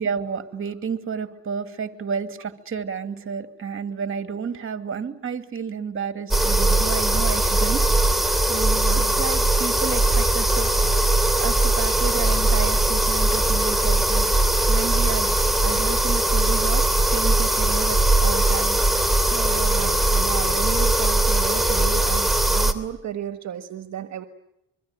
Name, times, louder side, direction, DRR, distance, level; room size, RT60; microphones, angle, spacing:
voice 1, 0.0-8.3 8.9-10.7 11.4-14.4 14.7-15.4 15.6-18.8, right 6 dB, 45° right, 8 dB, 2.5 m, -31 dB
sound 1, 6.3-22.7, right 2 dB, ahead, 2.9 m, -20 dB
voice 2, 8.5-9.1 19.3-24.2, right 10 dB, 60° right, 8 dB, 1.4 m, -33 dB
25.0 x 23.5 x 9.0 m, 0.87 s
cardioid pair, 90°, 30 cm